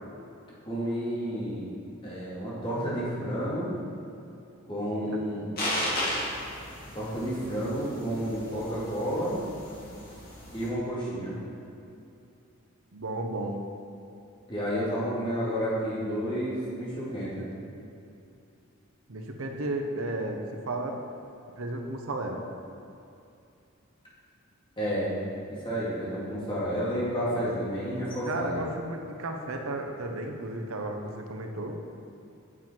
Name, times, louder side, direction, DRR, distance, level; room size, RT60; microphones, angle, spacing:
voice 1, 0.6-1.7 2.0-3.7 4.7-5.5 6.9-9.4 10.5-11.4 14.5-17.4 24.8-25.1 25.5-28.6, equal, 25° left, -8 dB, 2.3 m, -31 dB
voice 2, 4.8-5.2 12.9-13.6 19.1-21.0 21.6-22.4 28.3-31.7, right 2 dB, 85° right, 3 dB, 0.9 m, -33 dB
sound 1, 5.6-10.7, left 1 dB, 45° left, 2.2 m, -35 dB
8.4 x 7.5 x 4.5 m, 2.6 s
head